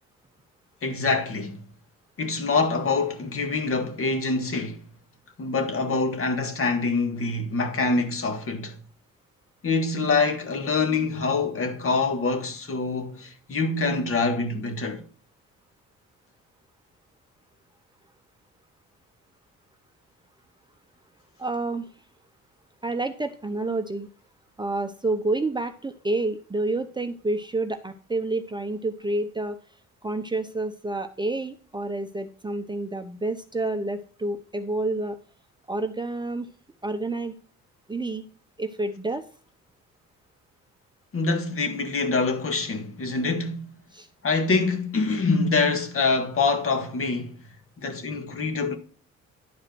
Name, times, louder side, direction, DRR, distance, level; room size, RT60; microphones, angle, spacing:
voice 1, 0.8-1.6 2.2-4.8 5.4-8.8 9.6-15.0 41.1-43.7 44.2-47.4 47.8-48.8, left 3 dB, 45° left, 1.9 m, -25 dB
voice 2, 21.4-21.9 22.8-24.1 24.6-29.6 30.0-35.2 35.7-36.5 36.8-37.3 37.9-38.2 38.6-39.2 43.9-44.1, right 2 dB, 15° right, 0.7 m, -29 dB
11.0 x 4.8 x 4.5 m
cardioid pair, 90°, 30 cm